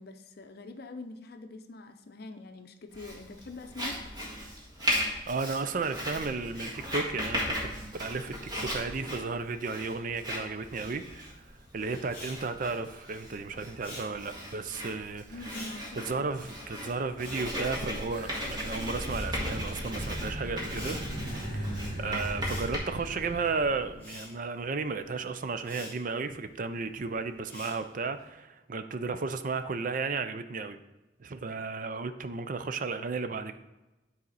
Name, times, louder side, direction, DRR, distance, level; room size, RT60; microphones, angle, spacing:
voice 1, 0.0-4.0 15.3-16.2, left 3 dB, 55° left, 0.6 m, -44 dB
Writing, 2.9-22.8, equal, 25° right, 1.8 m, -37 dB
voice 2, 5.3-11.5 11.7-15.2 16.0-21.0 21.5-30.8 31.2-33.6, right 4 dB, 45° right, 0.5 m, -34 dB
Respiratory sounds, 12.0-18.5 18.7-28.2, left 1 dB, 10° left, 2.6 m, -48 dB
sound 1, 18.1-24.1, equal, 70° right, 2.0 m, -38 dB
9.1 x 4.2 x 4.1 m
head